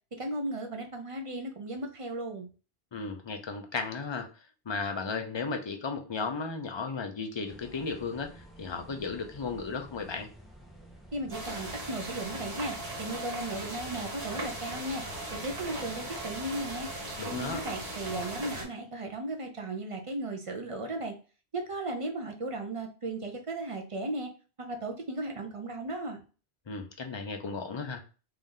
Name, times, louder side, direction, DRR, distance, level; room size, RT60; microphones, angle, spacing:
voice 1, 0.2-2.5 11.1-15.1 15.3-16.9 17.3-21.1 21.5-24.3 24.6-26.2, right 2 dB, 40° right, 3 dB, 0.6 m, -36 dB
voice 2, 2.9-4.3 4.7-10.3 17.2-17.6 26.7-28.0, left 4 dB, 35° left, 5 dB, 0.5 m, -35 dB
sound 1, 7.4-17.6, right 1 dB, ahead, 0.8 m, -52 dB
sound 2, 11.3-18.6, right 1 dB, 65° right, 1.6 m, -38 dB
3.3 x 2.7 x 3.7 m, 0.35 s
omnidirectional pair, 1.0 m